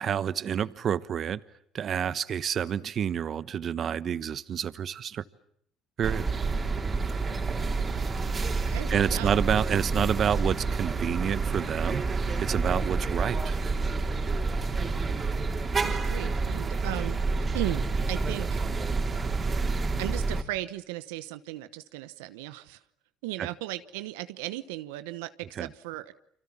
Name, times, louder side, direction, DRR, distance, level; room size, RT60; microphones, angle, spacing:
voice 1, 0.0-1.4 1.7-5.2 6.0-6.3 8.9-13.6 23.4-23.5 25.6-25.7, right 8 dB, 50° right, 16 dB, 1.2 m, -29 dB
sound 1, 6.0-20.4, right 3 dB, 35° right, 3.6 m, -28 dB
voice 2, 8.7-9.3 15.8-17.2 17.5-18.7 20.0-22.8 23.2-26.1, right 17 dB, 90° right, 12 dB, 1.0 m, -36 dB
29.5 x 25.5 x 7.3 m, 0.67 s
supercardioid pair, 70°, 0 cm